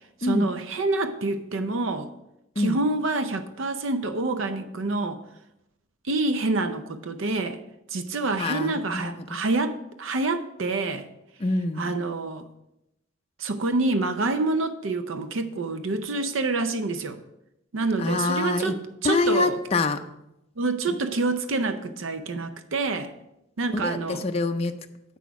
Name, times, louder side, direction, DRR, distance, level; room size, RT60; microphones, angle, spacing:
voice 1, 0.2-2.1 2.6-5.2 6.1-7.6 7.9-11.1 11.8-12.5 13.4-17.2 17.7-19.6 20.6-23.1 23.6-24.2, right 3 dB, 75° right, 0.6 m, -27 dB
voice 2, 8.4-9.4 11.4-11.9 18.0-18.7 19.0-20.0 23.7-24.7, left 3 dB, 30° left, 0.4 m, -26 dB
8.3 x 6.0 x 4.7 m
head